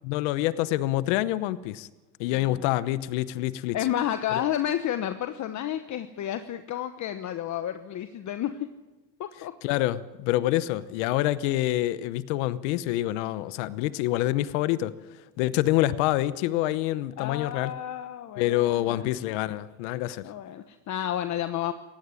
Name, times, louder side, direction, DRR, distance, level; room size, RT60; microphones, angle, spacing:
voice 1, 0.0-1.9 2.2-3.8 9.6-14.9 15.4-17.7 18.4-20.2, left 15 dB, 90° left, 16 dB, 1.0 m, -26 dB
voice 2, 2.3-2.6 3.7-8.7 9.2-9.5 17.2-19.1 20.2-21.7, left 11 dB, 55° left, 9 dB, 1.2 m, -31 dB
17.5 x 16.0 x 9.8 m, 1.1 s
supercardioid pair, 85°, 35 cm